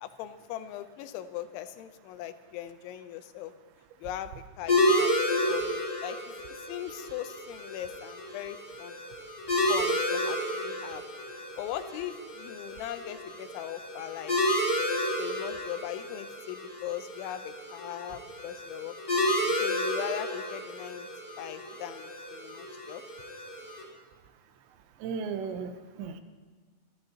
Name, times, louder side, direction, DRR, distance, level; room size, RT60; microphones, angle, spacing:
voice 1, 0.0-3.5 4.0-6.2 6.5-9.0 9.7-11.0 11.6-14.4 15.2-18.9 19.4-21.1 21.4-23.0, left 12 dB, 90° left, 10 dB, 3.1 m, -39 dB
sound 1, 4.7-23.8, left 1 dB, 20° left, 3.4 m, -31 dB
voice 2, 25.0-26.2, right 5 dB, 80° right, 8 dB, 2.9 m, -35 dB
24.0 x 13.0 x 2.9 m, 1.5 s
omnidirectional pair, 5.2 m